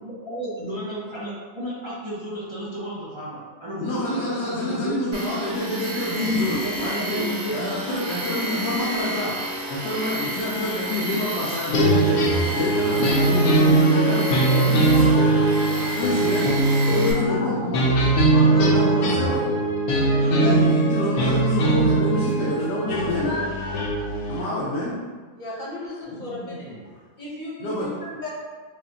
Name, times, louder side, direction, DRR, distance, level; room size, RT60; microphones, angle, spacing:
voice 1, 0.0-5.0 6.1-7.6 17.0-19.1 20.1-21.4 26.1-26.9, equal, 50° right, -9 dB, 0.3 m, -34 dB
voice 2, 3.8-7.2 7.5-9.4 9.7-15.2 15.9-16.6 16.9-17.9 18.6-19.4 20.3-23.4 24.3-25.0 27.6-27.9, left 1 dB, 85° left, -6 dB, 1.2 m, -27 dB
Tools, 5.1-17.1, right 1 dB, 80° right, 1.6 m, -31 dB
sound 1, 11.7-24.4, right 2 dB, 65° left, 1.0 m, -20 dB
voice 3, 13.7-14.2 14.8-16.5 17.0-17.7 18.2-19.5 20.1-20.6 20.9-21.2 22.9-24.9 25.4-28.3, left 1 dB, 40° left, -5 dB, 0.7 m, -36 dB
4.9 x 2.2 x 2.8 m, 1.4 s
omnidirectional pair, 1.8 m